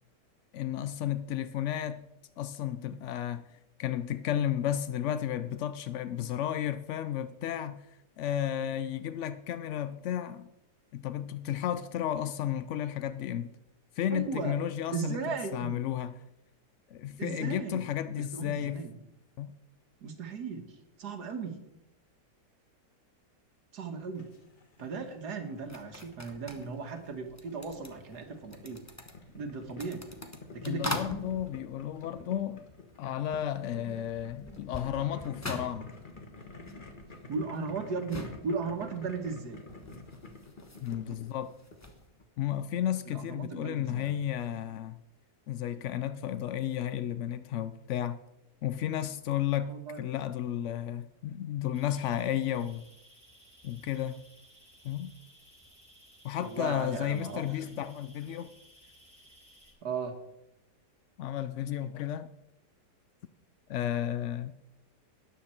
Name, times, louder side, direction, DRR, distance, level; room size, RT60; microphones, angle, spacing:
voice 1, 0.5-2.1 2.4-3.4 3.8-7.9 8.2-10.5 10.9-13.5 14.0-16.2 16.9-18.8 19.4-19.5 30.6-32.6 33.0-35.9 40.8-41.5 42.4-45.0 45.5-48.2 48.6-52.8 53.6-54.2 54.8-55.1 56.2-58.5 61.2-62.3 63.7-64.5, left 10 dB, 80° left, 0.6 m, -33 dB
voice 2, 14.1-14.6 14.9-15.8 17.2-17.8 18.3-18.9 20.0-21.6 23.7-24.3 24.8-28.8 29.3-30.1 30.5-31.0 37.3-39.6 41.1-41.2 43.1-44.1 49.7-50.1 56.4-57.4 59.8-60.2, right 5 dB, 70° right, 1.9 m, -36 dB
Boiling, 24.1-42.2, left 3 dB, 30° left, 1.4 m, -51 dB
sound 1, 25.7-33.0 33.3-42.0, left 1 dB, 10° left, 0.9 m, -44 dB
sound 2, 51.7-59.7, equal, 5° right, 4.5 m, -58 dB
13.0 x 9.4 x 4.4 m
omnidirectional pair, 1.8 m